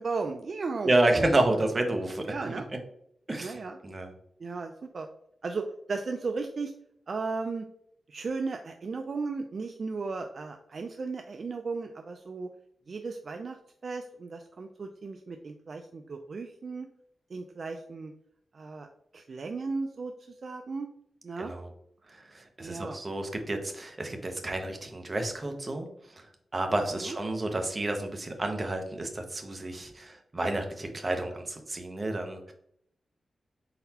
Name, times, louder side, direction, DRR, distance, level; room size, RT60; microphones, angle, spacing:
voice 1, 0.0-1.2 2.3-2.6 3.4-3.8 4.4-5.1 5.4-6.7 7.1-7.7 8.1-12.5 12.9-13.6 13.8-16.9 17.3-18.1 18.5-18.9 19.1-20.1 20.4-20.9 21.2-21.5 22.6-23.0 27.0-27.2, right 4 dB, 55° right, 5 dB, 0.3 m, -35 dB
voice 2, 0.8-2.5 3.3-4.1 21.4-21.7 22.1-25.9 26.1-26.3 26.5-32.5, right 2 dB, 30° right, 4 dB, 0.7 m, -30 dB
4.2 x 3.9 x 2.8 m, 0.72 s
wide cardioid pair, 110°, 0 cm